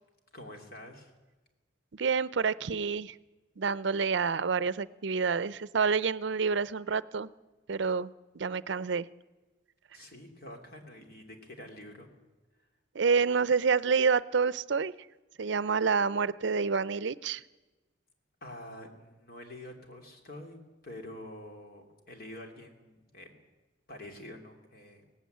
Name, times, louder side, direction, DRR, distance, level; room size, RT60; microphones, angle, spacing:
voice 1, 0.3-1.1 9.9-12.1 18.4-23.3 23.9-25.1, left 1 dB, 50° left, 3 dB, 2.9 m, -47 dB
voice 2, 1.9-3.2 3.6-7.3 7.7-8.1 8.3-9.1 12.9-14.9 15.4-17.4, right 5 dB, 70° right, 18 dB, 0.5 m, -28 dB
17.5 x 16.0 x 9.3 m, 1.2 s
head